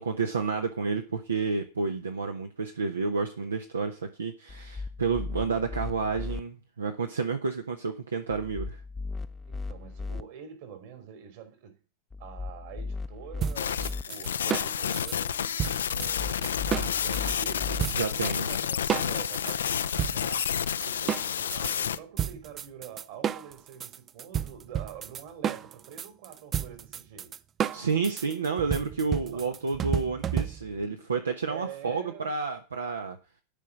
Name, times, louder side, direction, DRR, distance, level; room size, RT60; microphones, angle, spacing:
voice 1, 0.0-8.8 17.9-18.5 27.7-33.2, right 4 dB, 70° right, 1.2 m, -30 dB
sound 1, 4.5-6.4 8.3-10.2 12.1-14.0 15.9-17.8, left 3 dB, 15° left, 0.7 m, -37 dB
voice 2, 9.5-11.8 12.2-27.4 29.3-29.5 31.5-32.3, right 8 dB, 50° right, 3.1 m, -46 dB
sound 2, 13.4-17.4 17.8-18.6 18.9-21.7 22.2-30.8, right 9 dB, 25° right, 0.6 m, -32 dB
sound 3, 13.6-22.0, left 8 dB, 65° left, 0.6 m, -30 dB
12.5 x 5.6 x 7.5 m
figure-of-eight pair, 90°, 0 cm